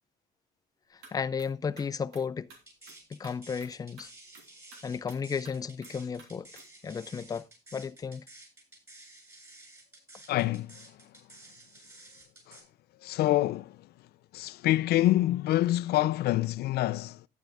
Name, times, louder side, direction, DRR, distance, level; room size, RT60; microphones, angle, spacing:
sound 1, 1.0-1.1 1.4-1.5 1.8-2.6 2.9-3.0 3.2-3.3 3.6-3.7 4.0-4.1 4.3-4.4 4.7-4.8 5.1-5.5 5.8-5.9 6.2-6.3 6.5-6.7, right 4 dB, 90° right, 3.1 m, -52 dB
voice 1, 1.1-2.5 3.1-4.1 4.8-6.5 6.8-7.5 7.7-8.2, left 6 dB, 20° left, 0.5 m, -33 dB
sound 2, 2.5-12.6, right 2 dB, 15° right, 7.3 m, -52 dB
voice 2, 10.3-11.1 12.5-12.6 13.0-13.9 14.3-17.3, left 15 dB, 70° left, 0.5 m, -27 dB
11.5 x 9.3 x 3.5 m
cardioid pair, 110°, 17 cm